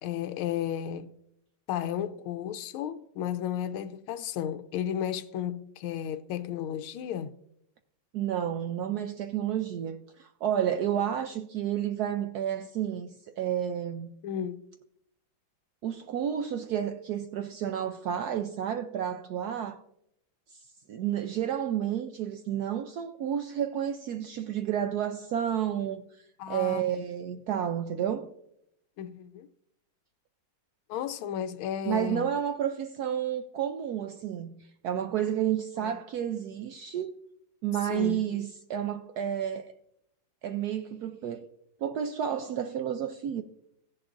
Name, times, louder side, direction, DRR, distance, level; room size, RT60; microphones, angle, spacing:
voice 1, 0.0-1.1 1.7-7.3 14.2-14.6 26.4-26.9 29.0-29.5 30.9-32.2 35.8-35.9 37.8-38.2, left 10 dB, 90° left, 1.4 m, -33 dB
voice 2, 8.1-14.1 15.8-19.8 20.9-26.0 26.5-28.3 31.8-37.2 37.6-39.7 40.4-41.5 41.8-43.4, right 9 dB, 85° right, 0.8 m, -31 dB
16.0 x 10.5 x 2.5 m
omnidirectional pair, 2.3 m